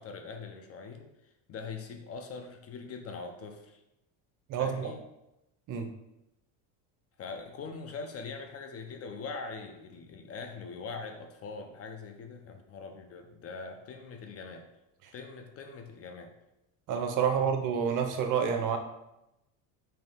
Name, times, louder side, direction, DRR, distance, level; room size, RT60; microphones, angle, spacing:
voice 1, 0.0-3.8 4.6-5.0 7.2-14.7 15.1-16.3 17.3-17.5, left 4 dB, 35° left, 5 dB, 0.5 m, -42 dB
voice 2, 4.5-4.9 5.7-5.9 16.9-18.8, right 7 dB, 50° right, 5 dB, 0.7 m, -28 dB
3.6 x 2.7 x 4.0 m, 0.90 s
supercardioid pair, 105°, 41 cm